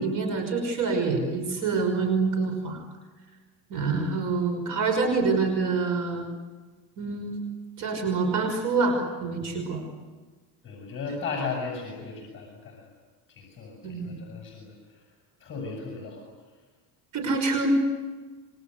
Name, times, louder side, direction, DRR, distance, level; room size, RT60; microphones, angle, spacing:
voice 1, 0.0-2.8 3.7-6.3 7.0-7.4 7.8-9.9 13.8-14.2 17.1-17.7, right 4 dB, 45° right, 5 dB, 5.8 m, -26 dB
voice 2, 10.6-12.9 13.3-15.1 15.4-16.2, left 4 dB, 30° left, 0 dB, 8.0 m, -36 dB
29.0 x 24.5 x 8.2 m, 1.4 s
cardioid pair, 135°, 42 cm